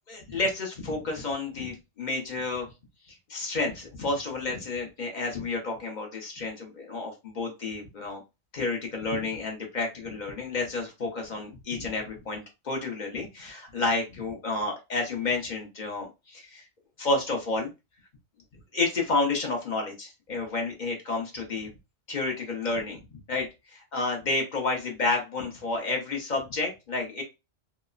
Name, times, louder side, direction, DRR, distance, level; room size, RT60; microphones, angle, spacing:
voice 1, 0.1-2.7 3.1-8.2 8.5-16.7 17.0-17.7 18.7-21.7 22.1-23.0 23.3-27.2, left 3 dB, 45° left, 2 dB, 0.7 m, -30 dB
2.9 x 2.0 x 2.3 m, 0.25 s
omnidirectional pair, 1.2 m